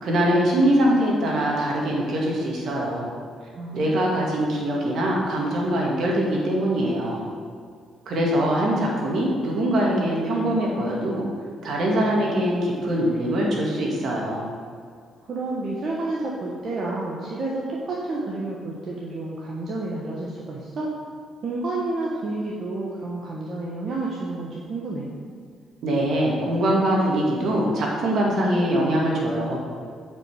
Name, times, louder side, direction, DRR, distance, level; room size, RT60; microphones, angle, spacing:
voice 1, 0.0-3.1 3.7-7.3 8.1-11.2 11.6-14.5 25.8-29.6, right 1 dB, 70° right, -2 dB, 2.0 m, -23 dB
voice 2, 3.5-4.0 15.3-20.9 21.4-25.1, right 2 dB, 55° right, -4 dB, 1.2 m, -30 dB
8.4 x 5.4 x 4.9 m, 2.1 s
cardioid pair, 90°, 0 cm